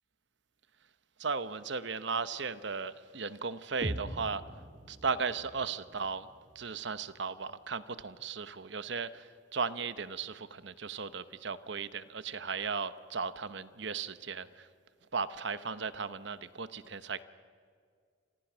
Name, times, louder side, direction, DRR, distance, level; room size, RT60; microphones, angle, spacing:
voice 1, 1.2-4.4 4.9-6.3 6.5-14.7 15.1-17.2, right 5 dB, 60° right, 13 dB, 0.9 m, -36 dB
sound 1, 3.8-7.8, equal, 30° right, 1.8 m, -43 dB
29.5 x 26.0 x 6.3 m, 2.1 s
head